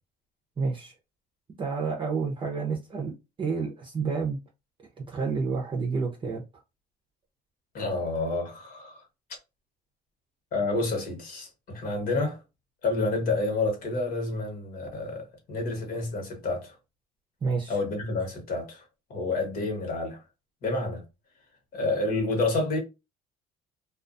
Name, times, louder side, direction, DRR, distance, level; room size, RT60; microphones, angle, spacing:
voice 1, 0.6-0.9 1.6-3.1 3.4-4.4 5.1-6.4 17.4-17.7, right 4 dB, 30° right, 0.6 m, -29 dB
voice 2, 7.7-9.0 10.5-12.4 12.8-16.7 17.7-18.8 19.1-20.2 20.6-21.0 21.7-22.8, left 2 dB, 60° left, 1.2 m, -29 dB
2.4 x 2.3 x 2.5 m
cardioid pair, 110°, 17 cm